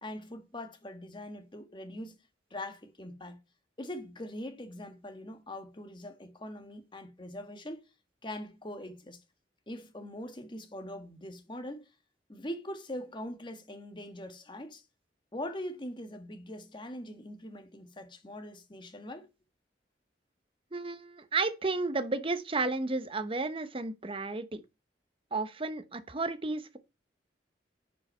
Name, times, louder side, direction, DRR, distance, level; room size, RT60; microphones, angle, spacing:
voice 1, 0.0-2.2 2.5-3.4 3.8-7.8 8.2-9.2 9.7-11.9 12.3-14.8 15.3-19.3, left 1 dB, 25° left, 1.4 m, -42 dB
voice 2, 20.7-24.6 25.3-26.8, right 3 dB, 30° right, 0.9 m, -32 dB
9.9 x 5.4 x 4.4 m
head